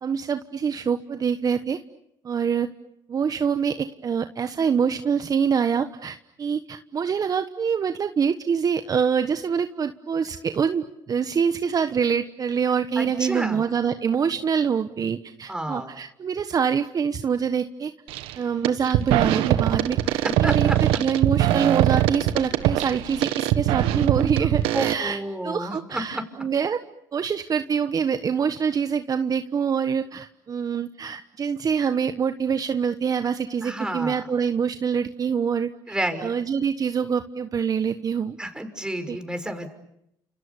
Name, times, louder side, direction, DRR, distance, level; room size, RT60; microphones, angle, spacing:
voice 1, 0.0-1.8 2.2-2.7 3.1-17.9 18.4-20.7 21.0-25.2 25.4-26.8 27.1-35.9 36.2-38.4 39.1-39.2, right 6 dB, 40° right, 9 dB, 1.3 m, -25 dB
voice 2, 13.0-13.6 15.5-15.9 20.2-20.8 24.4-24.5 24.7-26.2 33.6-34.2 35.9-36.3 38.4-39.7, right 1 dB, 10° right, 7 dB, 6.0 m, -30 dB
sound 1, 18.1-18.3 18.6-24.9, right 13 dB, 80° right, 1.5 m, -22 dB
30.0 x 28.0 x 7.1 m, 0.77 s
supercardioid pair, 70°, 9 cm